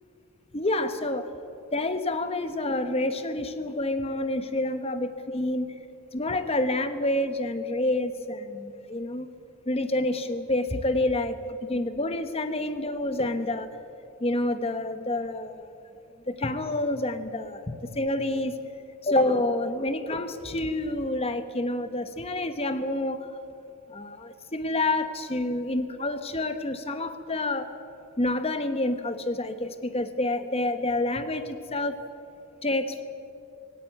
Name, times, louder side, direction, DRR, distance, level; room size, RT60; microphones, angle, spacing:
voice 1, 0.5-1.3 1.7-5.7 6.1-9.3 9.7-13.7 14.2-15.8 16.3-18.6 19.0-23.3 23.9-27.7 28.2-32.0 32.6-33.0, left 1 dB, 25° left, 9 dB, 1.0 m, -28 dB
17.0 x 16.5 x 9.1 m, 2.7 s
head